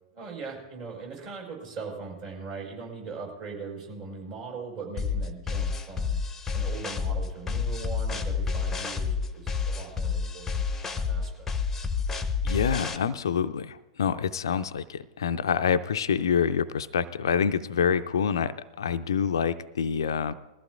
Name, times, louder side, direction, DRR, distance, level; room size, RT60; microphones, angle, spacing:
voice 1, 0.1-6.2 6.5-10.6 10.9-11.5, right 4 dB, 40° right, -1 dB, 5.1 m, -40 dB
sound 1, 5.0-13.0, left 5 dB, 10° left, 0.8 m, -29 dB
voice 2, 12.4-20.3, left 7 dB, 65° left, 12 dB, 0.4 m, -27 dB
21.0 x 14.5 x 2.5 m, 1.1 s
figure-of-eight pair, 100°, 3 cm